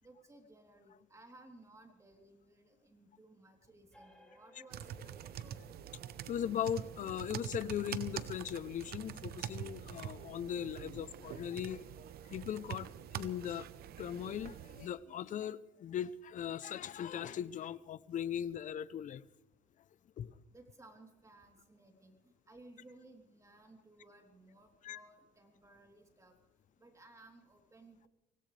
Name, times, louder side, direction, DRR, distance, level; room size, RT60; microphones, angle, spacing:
voice 1, 0.0-4.9 5.2-5.6 20.5-22.2 22.5-26.3 26.8-28.1, right 2 dB, 20° right, 3 dB, 3.3 m, -59 dB
sound 1, 3.9-11.1, left 1 dB, 5° left, 5.1 m, -65 dB
sound 2, 4.7-14.9, right 10 dB, 65° right, 0.9 m, -45 dB
voice 2, 6.3-11.8 12.3-12.9 13.1-13.6 14.0-19.2 20.2-20.3 24.8-25.0, left 9 dB, 50° left, 17 dB, 0.7 m, -39 dB
24.5 x 17.5 x 3.4 m, 0.94 s
cardioid pair, 110°, 17 cm